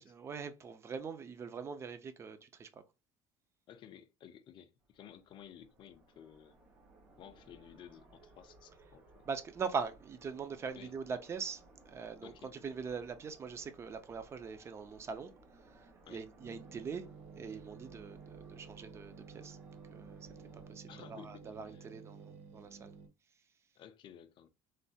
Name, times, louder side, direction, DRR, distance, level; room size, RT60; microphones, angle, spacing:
voice 1, 0.0-2.8 9.3-17.1 17.4-19.6 19.9-22.9, right 5 dB, 20° right, 0.3 m, -42 dB
voice 2, 3.7-6.6 7.2-9.2 10.8-10.9 12.2-12.5 16.1-16.2 20.9-21.9 23.8-24.5, left 9 dB, 40° left, 0.4 m, -55 dB
sound 1, 4.8-20.7, right 2 dB, 85° right, 1.4 m, -61 dB
sound 2, 16.4-23.1, right 5 dB, 65° right, 0.7 m, -53 dB
3.2 x 2.2 x 2.7 m
cardioid pair, 160°, 13 cm